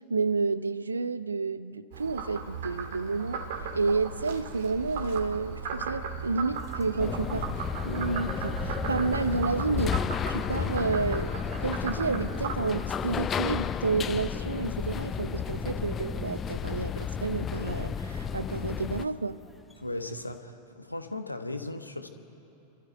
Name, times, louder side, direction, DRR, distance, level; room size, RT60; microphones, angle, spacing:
voice 1, 0.1-3.4 3.7-10.0 10.3-19.4, right 4 dB, 80° right, 16 dB, 0.6 m, -30 dB
Frog, 1.9-12.5, right 5 dB, 55° right, 1.8 m, -37 dB
sound 1, 6.5-20.4, right 1 dB, 5° left, 1.2 m, -49 dB
sound 2, 7.0-19.0, left 7 dB, 25° left, 0.6 m, -32 dB
voice 2, 19.8-22.1, left 2 dB, 85° left, 7 dB, 1.3 m, -37 dB
29.0 x 13.0 x 9.3 m, 2.9 s
figure-of-eight pair, 90°, 0 cm